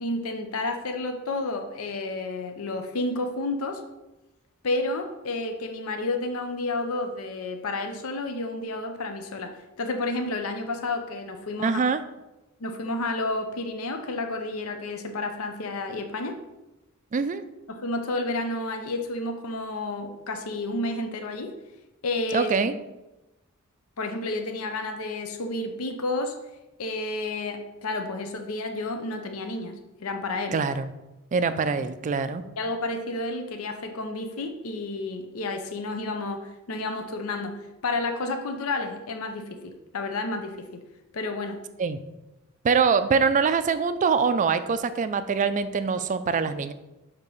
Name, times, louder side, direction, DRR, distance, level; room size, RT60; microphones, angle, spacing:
voice 1, 0.0-3.8 4.6-11.8 12.6-16.4 17.7-21.5 22.0-22.5 24.0-26.4 26.8-30.6 32.6-40.8 41.1-41.6, left 2 dB, 75° left, 5 dB, 0.6 m, -31 dB
voice 2, 11.6-12.0 17.1-17.4 22.3-22.7 30.5-30.9 31.3-32.4 41.8-42.0 42.6-46.7, right 5 dB, 35° right, 11 dB, 0.3 m, -24 dB
6.5 x 2.9 x 5.3 m, 1.0 s
head